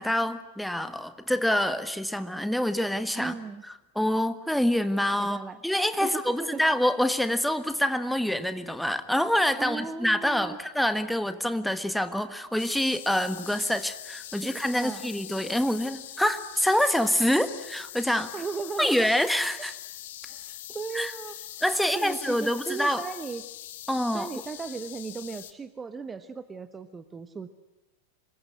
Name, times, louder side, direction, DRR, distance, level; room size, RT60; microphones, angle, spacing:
voice 1, 0.0-3.3 3.9-5.4 5.6-18.3 18.8-19.7 20.9-21.1 21.6-23.0 23.9-24.3, left 1 dB, ahead, 10 dB, 1.5 m, -26 dB
voice 2, 3.1-3.6 5.2-5.6 6.0-6.6 9.6-10.6 14.4-15.1 18.3-19.1 20.3-21.3 21.8-23.5 24.1-27.5, right 5 dB, 15° right, 11 dB, 1.1 m, -37 dB
sound 1, 12.6-25.5, left 13 dB, 55° left, 1.4 m, -43 dB
26.5 x 22.0 x 9.8 m, 0.97 s
figure-of-eight pair, 90°, 0 cm